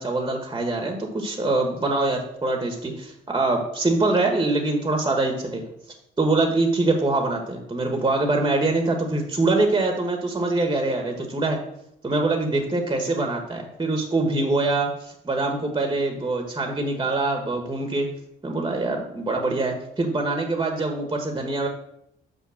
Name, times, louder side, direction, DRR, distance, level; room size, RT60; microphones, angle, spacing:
voice 1, 0.0-5.7 6.2-11.6 12.0-18.1 18.4-21.7, right 2 dB, 20° right, 3 dB, 1.3 m, -24 dB
6.0 x 5.3 x 6.3 m, 0.77 s
cardioid pair, 90°, 20 cm